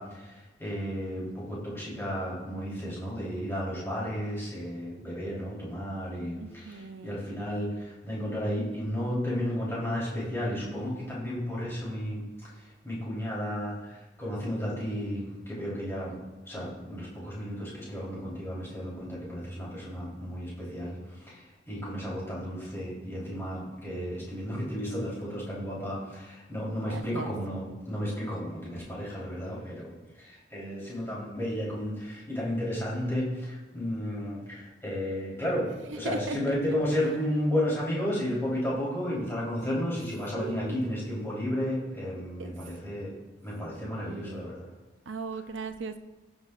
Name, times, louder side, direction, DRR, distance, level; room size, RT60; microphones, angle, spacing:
voice 1, 0.0-16.2 16.4-35.7 35.9-43.1 43.4-44.6, equal, 15° left, -7 dB, 3.6 m, -33 dB
voice 2, 6.4-7.3 26.9-27.3 35.9-36.6 40.4-41.0 42.4-42.6 43.7-44.4 45.1-46.0, right 3 dB, 85° right, 9 dB, 0.7 m, -38 dB
17.0 x 7.9 x 2.5 m, 1.1 s
head